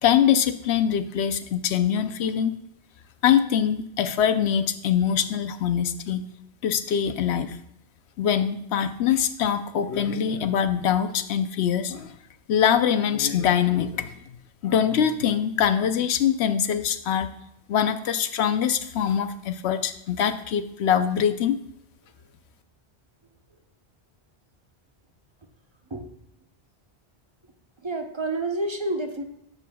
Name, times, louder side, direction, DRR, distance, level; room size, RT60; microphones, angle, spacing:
voice 1, 0.0-2.6 3.2-6.2 6.6-7.6 8.2-12.1 12.5-14.1 14.6-17.3 17.7-21.6, left 8 dB, 80° left, 10 dB, 0.9 m, -23 dB
voice 2, 27.8-29.2, right 2 dB, 30° right, 5 dB, 0.8 m, -29 dB
15.0 x 7.4 x 2.3 m, 0.75 s
omnidirectional pair, 1.1 m